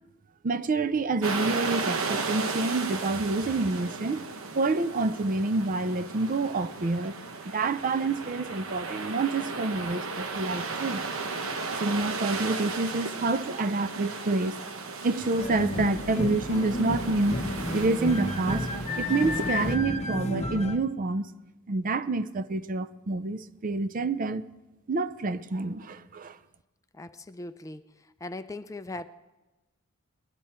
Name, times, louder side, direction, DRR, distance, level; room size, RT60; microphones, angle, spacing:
voice 1, 0.4-4.3 4.5-7.2 7.5-11.0 11.8-14.6 15.0-17.4 17.7-18.7 19.0-21.3 21.7-24.4 24.9-26.4, right 3 dB, 40° right, 0.5 m, -28 dB
sound 1, 1.2-19.8, right 4 dB, 70° right, 1.0 m, -35 dB
sound 2, 15.4-20.8, left 1 dB, 30° left, 0.8 m, -31 dB
voice 2, 26.9-27.8 28.2-29.1, left 2 dB, 15° left, 0.4 m, -39 dB
19.0 x 12.0 x 4.3 m
head